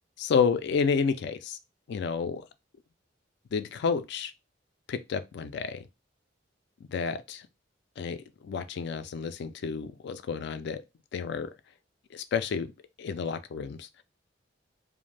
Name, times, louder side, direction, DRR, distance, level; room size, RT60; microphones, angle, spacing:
voice 1, 0.2-1.6 1.9-2.4 3.5-4.3 4.9-5.9 6.9-7.5 8.0-10.8 11.1-11.5 12.1-12.7 13.0-13.9, left 6 dB, 65° left, 0.3 m, -30 dB
2.5 x 2.0 x 3.2 m
head